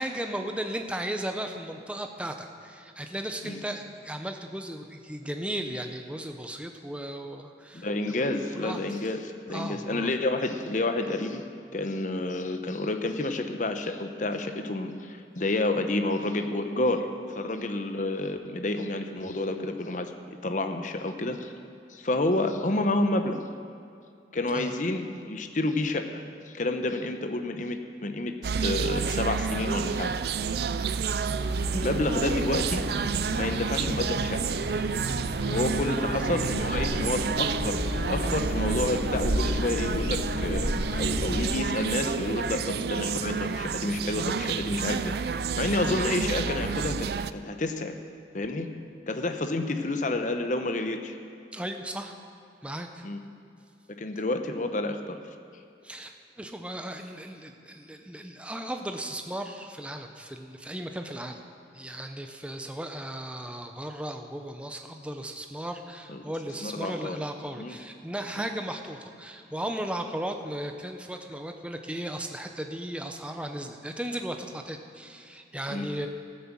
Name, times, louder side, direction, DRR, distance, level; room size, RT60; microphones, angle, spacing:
voice 1, 0.0-7.9 8.5-8.9 9.5-10.1 24.5-24.7 31.2-31.5 35.8-36.4 51.5-52.2 52.6-53.1 55.8-61.4 61.7-76.1, right 1 dB, 5° right, 5 dB, 0.7 m, -36 dB
voice 2, 7.7-11.4 11.7-20.1 20.4-21.5 21.9-23.4 24.3-30.1 31.7-32.9 33.3-34.4 35.5-48.0 48.3-48.7 49.1-51.1 53.0-53.2 54.0-55.2 66.1-66.3 66.6-67.2 67.6-67.7 68.4-68.5 75.7-75.9, left 2 dB, 45° left, 6 dB, 0.8 m, -29 dB
sound 1, 28.4-47.3, right 6 dB, 60° right, 0.4 m, -30 dB
sound 2, 31.4-41.4, left 1 dB, 85° left, 4.2 m, -33 dB
14.0 x 9.8 x 7.4 m, 2.4 s
head